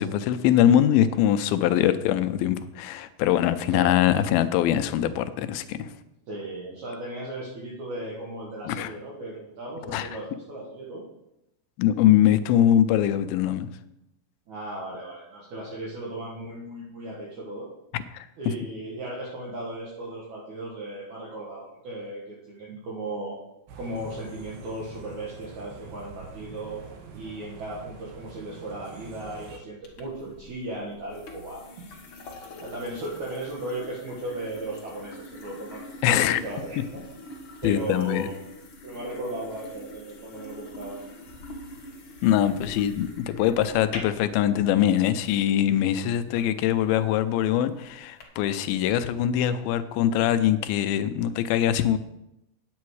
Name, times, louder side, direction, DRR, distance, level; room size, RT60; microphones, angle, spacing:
voice 1, 0.0-5.9 8.7-8.9 9.9-10.1 11.8-13.7 18.1-18.3 36.0-36.4 37.6-38.3 42.2-52.0, left 11 dB, 85° left, 11 dB, 2.4 m, -22 dB
voice 2, 6.3-11.0 14.5-17.7 18.4-23.4 23.8-26.8 27.1-31.6 32.6-37.0 37.6-38.4 38.8-41.0, right 1 dB, 60° right, -5 dB, 2.6 m, -36 dB
sound 1, 23.7-29.6, right 5 dB, 85° right, 3.1 m, -45 dB
sound 2, 29.8-48.2, left 2 dB, 50° left, 1.4 m, -45 dB
9.5 x 8.4 x 4.7 m, 0.87 s
omnidirectional pair, 4.3 m